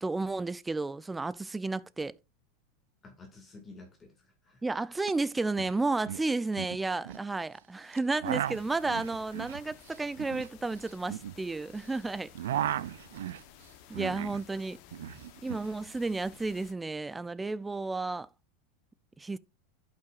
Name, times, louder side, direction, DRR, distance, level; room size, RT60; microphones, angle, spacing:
voice 1, 0.0-2.1 4.6-12.3 13.9-14.8 15.4-18.3 19.2-19.4, right 3 dB, 10° right, 0.5 m, -32 dB
voice 2, 3.0-4.6 12.5-13.3 13.9-14.2 15.0-15.2, left 3 dB, 20° left, 2.1 m, -52 dB
sound 1, 5.0-5.1 5.4-5.8 6.0-7.2 7.9-11.9 12.2-14.4 14.7-15.7, right 12 dB, 85° right, 0.3 m, -36 dB
sound 2, 8.2-16.7, left 11 dB, 60° left, 1.0 m, -55 dB
11.5 x 5.7 x 2.5 m
supercardioid pair, 120°, 0 cm